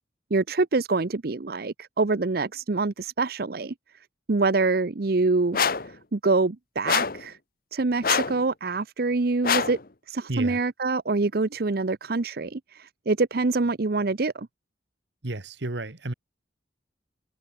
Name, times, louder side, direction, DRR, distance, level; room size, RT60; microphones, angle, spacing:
voice 1, 0.3-3.7 4.3-5.6 6.1-7.3 7.7-9.8 10.1-14.5, right 3 dB, 55° right, 0.7 m, -25 dB
sound 1, 5.5-5.9 6.9-7.3 8.0-8.4 9.4-9.8, left 6 dB, 50° left, 1.1 m, -24 dB
voice 2, 10.3-10.6 15.2-16.1, right 2 dB, 70° right, 1.5 m, -32 dB
head